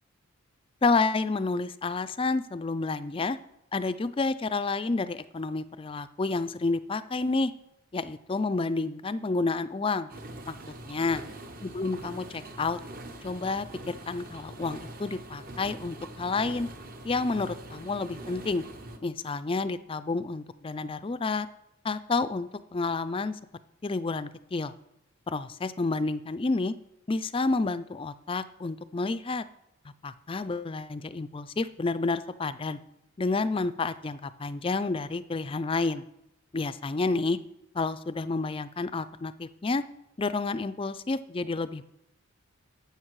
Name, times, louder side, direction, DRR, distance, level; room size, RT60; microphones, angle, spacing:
voice 1, 0.8-3.4 3.7-7.5 7.9-10.1 10.5-10.6 10.9-11.2 11.6-12.8 13.2-16.7 17.0-18.6 19.0-21.5 21.8-23.4 23.8-24.7 25.3-26.7 27.1-29.4 30.0-32.8 33.2-36.0 36.5-37.4 37.7-39.8 40.2-41.8, left 3 dB, 25° left, 13 dB, 0.4 m, -29 dB
sound 1, 10.1-19.0, right 1 dB, 40° right, 0.9 m, -43 dB
12.5 x 8.1 x 4.7 m, 0.86 s
head